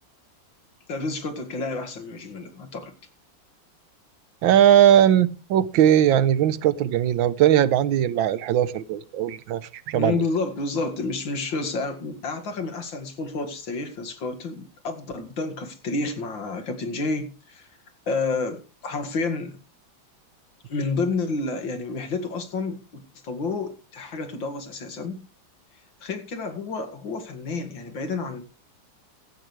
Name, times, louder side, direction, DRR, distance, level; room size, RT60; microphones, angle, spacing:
voice 1, 0.9-2.9 9.9-17.7 18.1-19.6 20.7-25.2 26.0-28.4, left 3 dB, 75° left, 2.8 m, -30 dB
voice 2, 4.4-10.2, right 10 dB, 80° right, 1.6 m, -19 dB
16.5 x 12.5 x 3.2 m
omnidirectional pair, 2.1 m